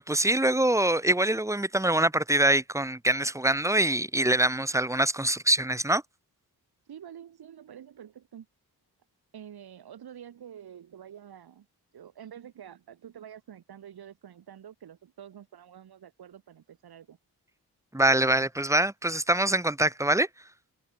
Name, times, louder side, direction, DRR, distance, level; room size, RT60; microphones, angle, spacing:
voice 1, 0.0-6.0 17.9-20.3, right 1 dB, 10° right, 1.6 m, -24 dB
voice 2, 6.9-8.5 9.3-11.7 11.9-17.2, right 9 dB, 80° right, 5.6 m, -47 dB
cardioid pair, 95°, 37 cm